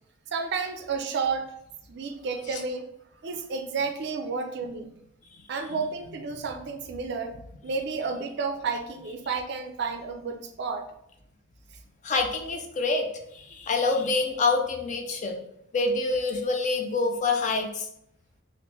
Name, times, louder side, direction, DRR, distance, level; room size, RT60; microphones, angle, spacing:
voice 1, 0.3-1.5 1.9-2.8 3.2-4.9 5.5-7.4 7.6-10.9, right 5 dB, 55° right, 6 dB, 0.4 m, -31 dB
voice 2, 12.0-15.4 15.7-17.9, left 3 dB, 35° left, 3 dB, 0.4 m, -26 dB
3.0 x 2.5 x 3.2 m, 0.75 s
head